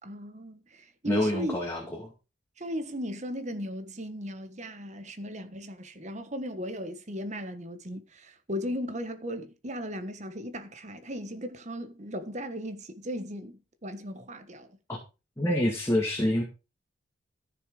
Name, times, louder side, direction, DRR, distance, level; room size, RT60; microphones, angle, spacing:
voice 1, 0.0-1.6 2.6-14.7, equal, 35° right, 1.3 m, -37 dB
voice 2, 1.0-2.1 14.9-15.0 15.4-16.4, left 1 dB, 15° left, 2.3 m, -27 dB
14.5 x 6.9 x 4.9 m
head